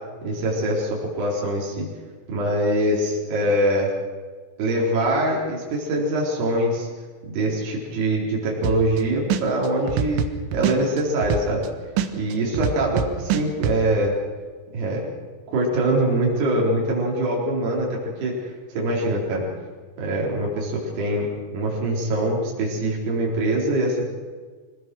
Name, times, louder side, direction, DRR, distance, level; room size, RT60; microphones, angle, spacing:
voice 1, 0.2-1.9 2.3-3.9 4.6-6.9 7.2-10.2 10.5-11.6 12.1-14.1 14.7-15.1 15.5-19.4 20.0-24.1, right 1 dB, 55° right, -3 dB, 6.1 m, -23 dB
sound 1, 8.6-9.0 9.3-11.7 12.0-13.8, right 8 dB, 80° right, 3.6 m, -24 dB
25.5 x 18.0 x 6.3 m, 1.5 s
omnidirectional pair, 5.6 m